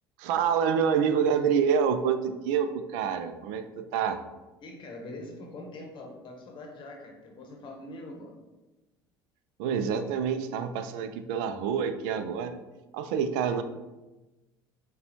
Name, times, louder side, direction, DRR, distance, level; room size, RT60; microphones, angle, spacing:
voice 1, 0.2-4.2 9.6-12.6 12.9-13.6, right 7 dB, 70° right, 10 dB, 0.4 m, -27 dB
voice 2, 4.6-8.3, left 2 dB, 45° left, 1 dB, 0.8 m, -43 dB
6.5 x 2.3 x 2.9 m, 1.1 s
hypercardioid pair, 75°, 11 cm